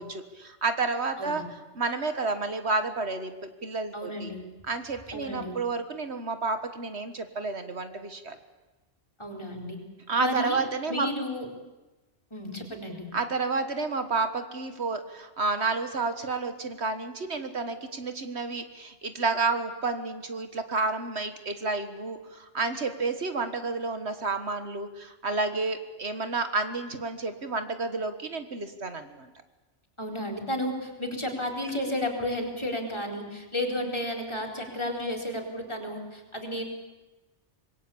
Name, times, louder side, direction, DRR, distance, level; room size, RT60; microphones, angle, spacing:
voice 1, 0.0-1.4 1.7-3.3 3.6-4.3 4.7-8.4 10.1-11.1 13.1-29.3, right 3 dB, 65° right, 8 dB, 1.8 m, -30 dB
voice 2, 3.9-4.4 5.1-5.6 9.2-9.8 10.2-10.6 10.9-11.5 12.3-13.1 30.0-36.6, left 1 dB, 25° left, 3 dB, 4.3 m, -32 dB
26.0 x 21.5 x 8.6 m, 1.1 s
omnidirectional pair, 1.2 m